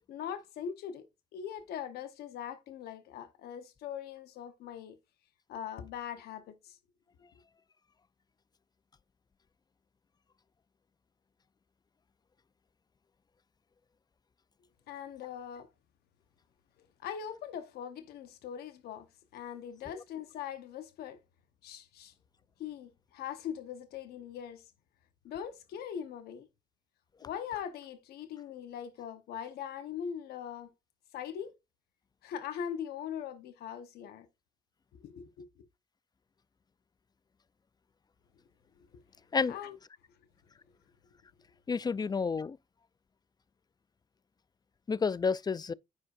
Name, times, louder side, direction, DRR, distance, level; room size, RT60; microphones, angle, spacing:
voice 1, 0.1-1.1 1.3-5.0 5.5-6.8 14.9-15.7 17.0-19.1 19.3-21.2 21.6-22.1 22.6-24.7 25.2-26.5 27.2-30.7 31.1-31.5 32.2-34.3 34.9-35.5 39.5-39.8, left 8 dB, 85° left, 0.9 m, -41 dB
voice 2, 41.7-42.6 44.9-45.7, left 5 dB, 25° left, 0.3 m, -30 dB
9.3 x 5.0 x 2.4 m
supercardioid pair, 60°, 16 cm